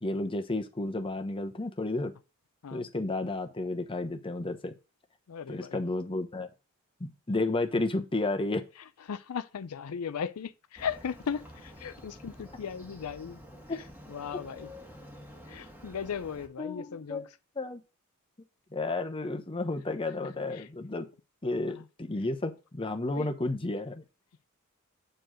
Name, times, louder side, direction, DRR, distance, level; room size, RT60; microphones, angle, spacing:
voice 1, 0.0-2.1 2.7-4.7 5.5-6.5 7.0-8.7 13.7-13.8 16.6-17.2 17.6-17.8 18.7-21.1 21.4-24.0, left 2 dB, 25° left, 0.9 m, -32 dB
voice 2, 5.3-5.8 9.1-13.4 13.7-14.7 15.5-17.3 20.2-20.7 21.4-21.9 23.1-23.3, left 7 dB, 80° left, 0.5 m, -37 dB
Motorcycle, 10.8-16.5, left 1 dB, 10° right, 1.5 m, -49 dB
7.8 x 4.6 x 5.0 m
head